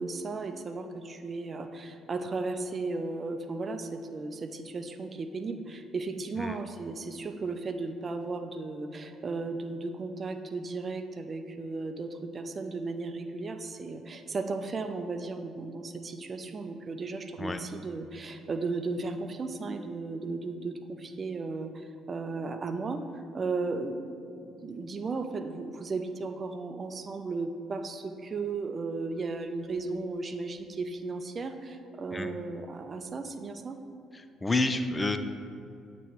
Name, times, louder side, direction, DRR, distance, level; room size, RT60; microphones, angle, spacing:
voice 1, 0.0-23.0 23.3-24.2 24.4-33.8, right 3 dB, 40° right, 8 dB, 0.5 m, -35 dB
voice 2, 34.1-35.2, left 2 dB, 25° left, 9 dB, 0.4 m, -29 dB
8.1 x 3.0 x 4.6 m, 2.5 s
hypercardioid pair, 55°, 0 cm